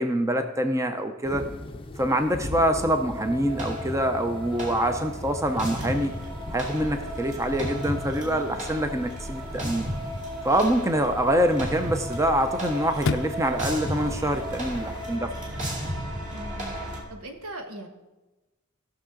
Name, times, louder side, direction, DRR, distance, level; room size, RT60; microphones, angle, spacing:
voice 1, 0.0-1.5 2.0-6.2 6.5-9.9 10.4-15.3, right 1 dB, 15° right, 6 dB, 0.6 m, -25 dB
sound 1, 1.2-15.2, left 2 dB, 25° left, 0.6 m, -42 dB
sound 2, 3.1-17.0, equal, 35° right, 2.4 m, -34 dB
Chirp tweet / Car / Slam, 5.2-15.2, left 4 dB, 60° left, 0.5 m, -40 dB
voice 2, 8.2-8.6 16.3-16.8 17.1-17.9, right 1 dB, 80° right, 4 dB, 1.4 m, -40 dB
17.5 x 6.4 x 3.8 m, 1.1 s
head